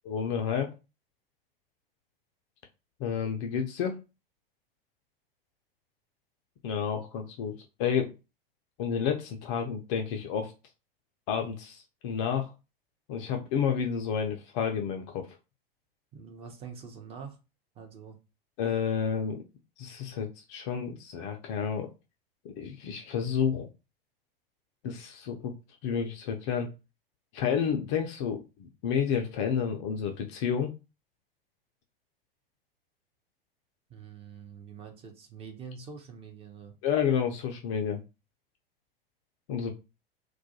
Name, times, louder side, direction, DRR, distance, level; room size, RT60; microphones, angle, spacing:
voice 1, 0.0-0.7 3.0-4.0 6.6-8.1 8.8-10.5 11.3-12.5 13.1-15.3 18.6-19.5 19.8-21.9 22.4-23.7 24.8-25.5 25.8-26.7 27.3-30.7 36.8-38.0 39.5-39.7, left 7 dB, 30° left, 0.4 m, -30 dB
voice 2, 16.1-17.4 17.8-18.2 33.9-36.7, right 6 dB, 20° right, 0.5 m, -45 dB
2.3 x 2.1 x 2.7 m
figure-of-eight pair, 90°, 30 cm